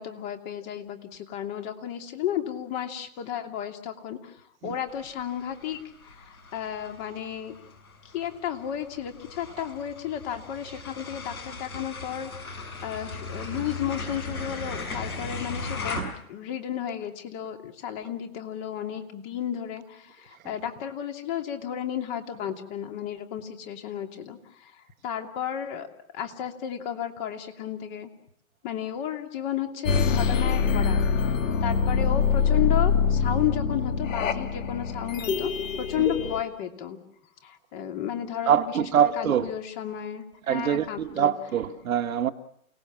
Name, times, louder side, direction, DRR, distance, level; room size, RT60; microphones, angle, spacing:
voice 1, 0.0-7.5 8.1-25.9 26.1-28.1 28.6-31.4 31.6-35.5 35.8-37.0 37.4-41.3, left 10 dB, 30° left, 2.7 m, -33 dB
sound 1, 4.9-16.0, left 4 dB, 80° left, 6.6 m, -38 dB
sound 2, 29.8-36.4, left 6 dB, 60° left, 2.4 m, -24 dB
voice 2, 38.5-39.5 40.5-42.3, right 9 dB, 70° right, 1.5 m, -24 dB
29.0 x 18.5 x 7.3 m
hypercardioid pair, 145°, 43 cm